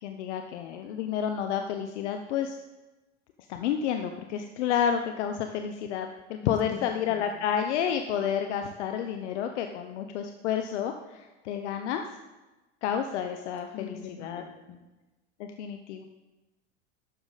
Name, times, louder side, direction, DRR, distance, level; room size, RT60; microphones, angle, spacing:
voice 1, 0.0-2.6 3.5-12.0 12.8-14.4 15.4-16.1, left 8 dB, 80° left, 6 dB, 0.8 m, -30 dB
voice 2, 6.4-6.9 7.3-7.5 13.7-14.8, left 8 dB, 55° left, 4 dB, 1.8 m, -42 dB
12.0 x 6.9 x 4.0 m, 1.1 s
hypercardioid pair, 85°, 34 cm